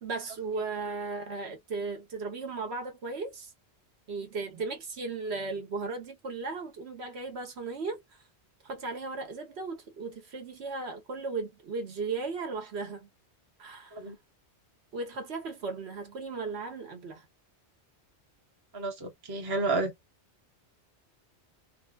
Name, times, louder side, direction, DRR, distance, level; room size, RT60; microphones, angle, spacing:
voice 1, 0.0-3.5 4.1-8.0 8.6-13.1 13.6-14.0 14.9-17.3, right 4 dB, 70° right, 1.2 m, -36 dB
voice 2, 18.7-19.9, right 3 dB, 25° right, 0.7 m, -31 dB
3.2 x 2.2 x 2.3 m
omnidirectional pair, 1.2 m